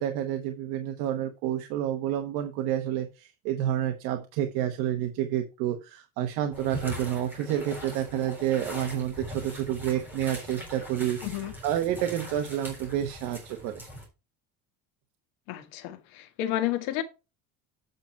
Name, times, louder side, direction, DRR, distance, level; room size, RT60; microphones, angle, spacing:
voice 1, 0.0-13.8, right 11 dB, 75° right, 1.2 m, -29 dB
sound 1, 6.5-14.1, equal, 5° right, 3.6 m, -41 dB
voice 2, 11.2-11.5 15.5-17.0, left 13 dB, 80° left, 1.5 m, -31 dB
8.2 x 5.9 x 4.5 m
cardioid pair, 175°, 33 cm